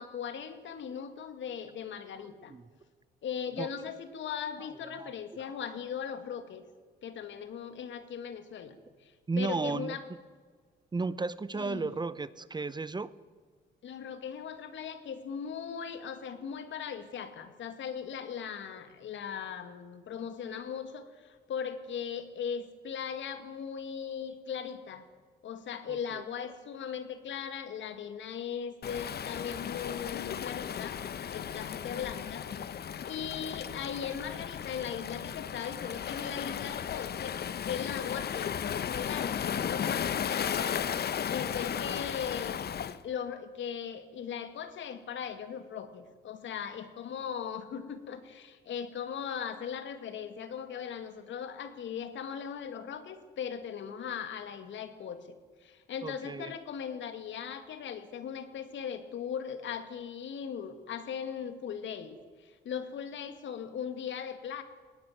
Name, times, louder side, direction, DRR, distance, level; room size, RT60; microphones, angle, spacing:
voice 1, 0.0-2.5 3.2-6.6 7.0-10.0 11.5-11.9 13.8-25.1 25.4-31.0 31.3-32.5 33.1-37.4 37.6-42.6 43.0-55.3 55.6-64.6, left 7 dB, 70° left, 10 dB, 2.3 m, -39 dB
voice 2, 4.8-5.5 9.3-10.0 10.9-13.1 25.9-26.2 56.0-56.5, right 3 dB, 20° right, 17 dB, 0.8 m, -34 dB
Waves surf, 28.8-43.0, left 8 dB, 55° left, 1.0 m, -35 dB
19.5 x 17.0 x 9.5 m, 1.5 s
cardioid pair, 90°, 20 cm